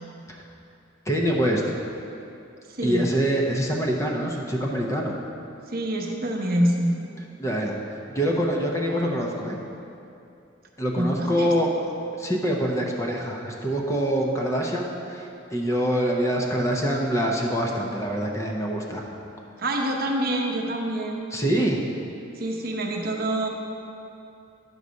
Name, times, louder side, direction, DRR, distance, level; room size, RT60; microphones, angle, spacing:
voice 1, 1.1-1.6 2.8-5.2 7.4-7.7 8.1-9.6 10.8-11.9 12.2-19.0 21.3-21.8, equal, 15° left, -1 dB, 0.7 m, -25 dB
voice 2, 5.7-7.0 11.0-11.5 19.6-21.2 22.4-23.5, right 1 dB, 50° right, 1 dB, 0.8 m, -26 dB
9.5 x 4.0 x 6.3 m, 2.7 s
head